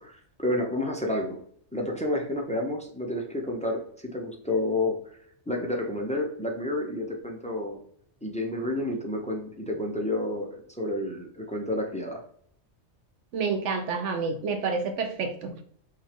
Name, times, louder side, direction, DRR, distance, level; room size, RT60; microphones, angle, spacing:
voice 1, 0.0-1.4 1.7-5.2 5.5-7.8 8.2-12.2, left 1 dB, 10° left, 1 dB, 0.5 m, -30 dB
voice 2, 13.3-15.5, right 4 dB, 90° right, 7 dB, 1.0 m, -29 dB
5.5 x 2.6 x 3.4 m, 0.62 s
omnidirectional pair, 1.2 m